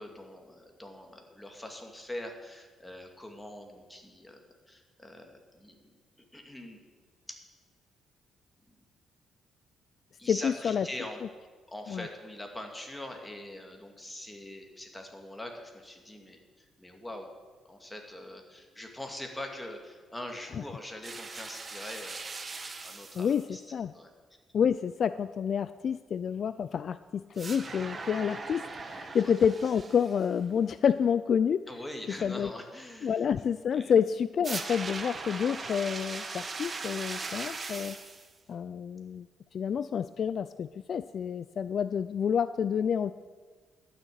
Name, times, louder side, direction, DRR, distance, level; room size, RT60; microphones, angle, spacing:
voice 1, 0.0-5.9 6.3-6.8 7.3-7.4 8.7-8.8 10.2-11.2 11.7-17.3 17.7-22.6 22.8-23.6 23.9-24.1 29.1-29.3 31.7-33.3 33.7-33.9, left 1 dB, 10° left, 3 dB, 2.2 m, -43 dB
voice 2, 10.3-10.9 11.9-12.1 23.1-23.9 24.5-31.7 32.2-32.5 33.0-38.0 38.5-39.3 39.5-43.1, left 7 dB, 55° left, 14 dB, 0.3 m, -29 dB
sound 1, 21.0-23.4 27.4-30.3 34.4-38.3, right 3 dB, 35° right, 1.2 m, -39 dB
12.0 x 6.5 x 9.3 m, 1.5 s
cardioid pair, 90°, 0 cm